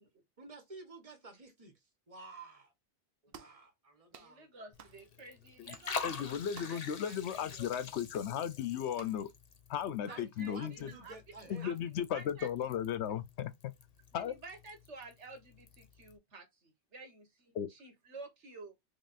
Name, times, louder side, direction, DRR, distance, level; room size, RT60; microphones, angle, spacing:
voice 1, 0.4-2.7 3.2-4.6 10.1-11.7, right 3 dB, 35° right, 1.0 m, -52 dB
sound 1, 3.3-3.6 4.1-4.3 4.8-5.0 5.7-5.9 6.5-6.9 7.7-7.9 8.9-9.2, right 8 dB, 65° right, 0.7 m, -53 dB
voice 2, 4.2-6.4 6.7-7.7 10.1-11.2 11.6-12.5 12.7-12.8 14.1-16.4 16.9-18.7, right 3 dB, 85° right, 1.6 m, -52 dB
Liquid, 4.7-16.2, left 5 dB, 45° left, 0.6 m, -47 dB
voice 3, 6.0-9.3 9.7-10.9 11.5-13.7 14.1-14.3 17.5-17.7, left 9 dB, 80° left, 0.9 m, -36 dB
3.6 x 3.4 x 2.5 m
omnidirectional pair, 1.2 m